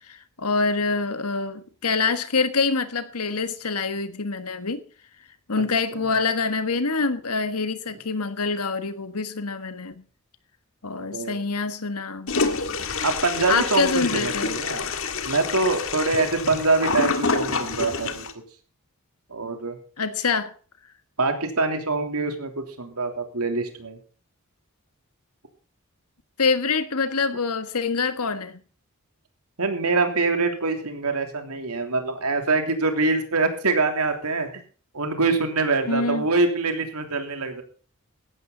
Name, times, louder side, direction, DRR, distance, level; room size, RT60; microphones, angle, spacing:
voice 1, 0.1-4.8 5.5-10.0 10.8-12.3 13.5-14.5 20.0-20.5 26.4-28.6 35.9-36.3, left 4 dB, 90° left, 1.5 m, -25 dB
voice 2, 11.0-11.4 13.0-14.9 15.2-18.3 19.3-19.8 21.2-24.0 29.6-34.5 34.9-37.6, right 3 dB, 85° right, 3.3 m, -24 dB
Toilet flush, 12.3-18.3, left 4 dB, 65° left, 1.9 m, -27 dB
16.5 x 13.0 x 4.0 m
head